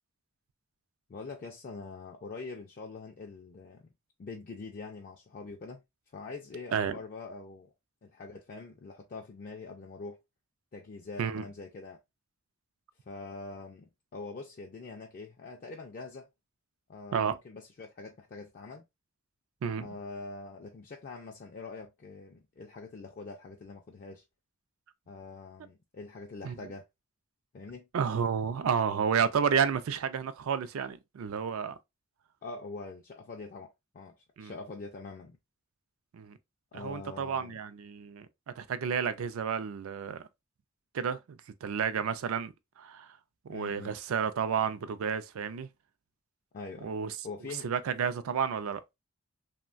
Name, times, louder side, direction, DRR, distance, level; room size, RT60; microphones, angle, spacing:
voice 1, 1.1-3.9 4.2-5.8 6.1-7.7 8.0-10.2 10.7-12.0 13.1-16.3 16.9-18.8 19.8-24.2 25.1-26.9 27.5-27.9 32.4-35.4 36.7-37.6 43.5-43.9 46.5-46.9 47.2-47.7, left 3 dB, 40° left, 0.3 m, -44 dB
voice 2, 27.9-31.8 34.4-34.5 36.1-36.4 36.7-40.3 40.9-43.2 43.4-45.7 46.8-47.1 47.6-48.8, right 7 dB, 75° right, 0.4 m, -31 dB
3.0 x 2.1 x 2.4 m
head